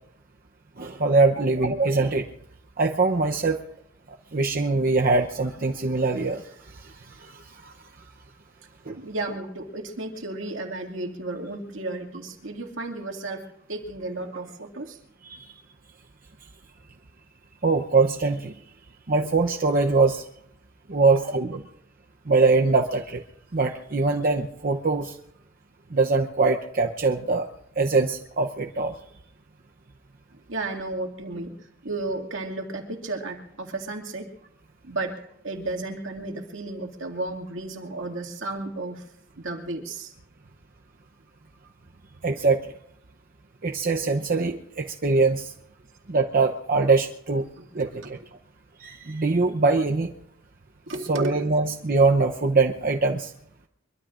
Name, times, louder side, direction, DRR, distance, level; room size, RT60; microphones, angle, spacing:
voice 1, 0.8-2.3 2.8-3.6 4.3-7.7 8.9-9.0 15.2-15.5 17.6-18.5 19.1-20.2 20.9-21.6 22.3-23.2 23.5-25.2 25.9-27.5 27.8-29.0 42.2-42.6 43.6-45.5 46.1-47.5 47.7-48.2 48.8-50.1 51.1-53.3, right 3 dB, 45° right, 2 dB, 0.8 m, -23 dB
voice 2, 9.0-15.0 21.0-21.4 30.5-31.5 31.8-34.3 34.8-39.0 39.4-40.1 47.6-47.7 48.0-48.1 50.9-51.2, right 2 dB, 75° right, 2 dB, 2.3 m, -33 dB
23.5 x 23.0 x 2.5 m, 0.76 s
head